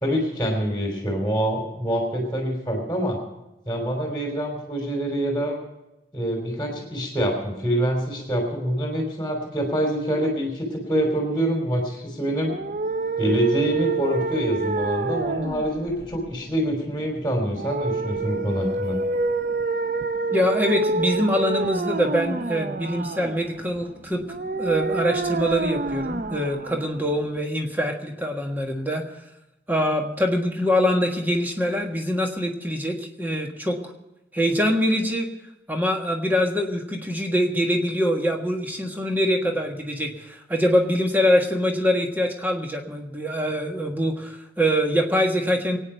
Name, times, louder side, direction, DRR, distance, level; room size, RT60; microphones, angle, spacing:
voice 1, 0.0-3.2 3.6-5.5 6.1-12.5 13.2-19.0, equal, 10° left, 0 dB, 3.0 m, -25 dB
sound 1, 12.4-27.4, right 3 dB, 50° right, 0.5 m, -28 dB
voice 2, 20.3-24.2 24.6-29.2 29.7-33.9 34.3-35.3 35.7-45.8, equal, 10° right, 2 dB, 1.5 m, -24 dB
23.0 x 9.3 x 5.6 m, 0.92 s
head